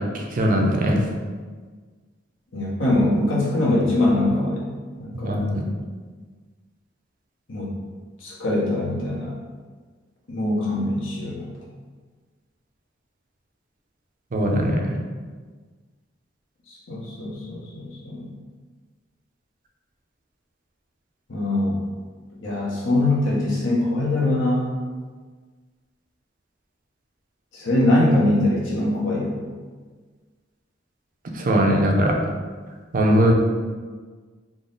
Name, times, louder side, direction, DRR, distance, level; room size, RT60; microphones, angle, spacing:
voice 1, 0.1-1.0 5.2-5.6 14.3-14.8 31.4-32.1 32.9-33.3, equal, 45° right, 1 dB, 0.5 m, -20 dB
voice 2, 2.5-4.7 4.9-5.4 7.5-7.7 8.2-9.3 10.3-11.5 16.7-18.3 21.3-21.8 22.4-24.7 27.5-29.4, left 1 dB, 80° left, -4 dB, 0.9 m, -22 dB
3.7 x 2.0 x 3.8 m, 1.5 s
head